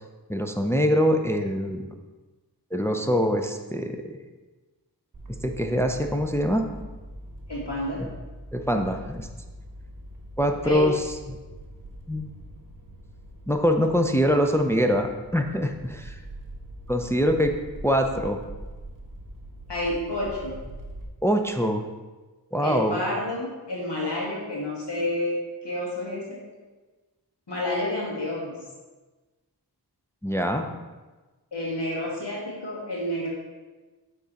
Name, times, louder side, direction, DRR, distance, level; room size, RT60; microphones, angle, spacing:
voice 1, 0.3-2.0 2.7-4.2 5.3-6.7 8.0-8.1 8.5-9.3 10.4-11.4 12.1-12.3 13.5-16.2 16.9-17.5 17.8-18.4 21.2-21.9 22.5-23.0 30.2-30.7, equal, 5° left, 4 dB, 0.5 m, -24 dB
sound 1, 5.1-21.0, right 1 dB, 50° right, 1.2 m, -43 dB
voice 2, 7.5-8.1 10.6-10.9 19.7-20.6 22.6-26.4 27.5-28.5 31.5-33.3, left 1 dB, 85° left, -5 dB, 2.1 m, -29 dB
9.2 x 3.7 x 4.1 m, 1.2 s
wide cardioid pair, 55°, 40 cm